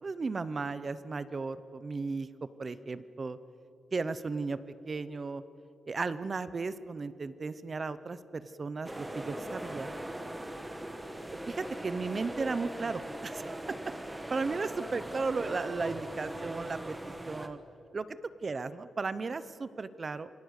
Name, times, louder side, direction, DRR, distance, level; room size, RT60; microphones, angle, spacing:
voice 1, 0.0-3.4 3.9-5.4 5.9-9.9 11.5-13.6 14.3-17.6 17.9-18.1 18.4-20.3, right 4 dB, 30° right, 15 dB, 0.7 m, -35 dB
sound 1, 8.8-17.5, right 1 dB, 10° right, 1.3 m, -40 dB
27.5 x 22.5 x 8.2 m, 2.9 s
wide cardioid pair, 170°, 0 cm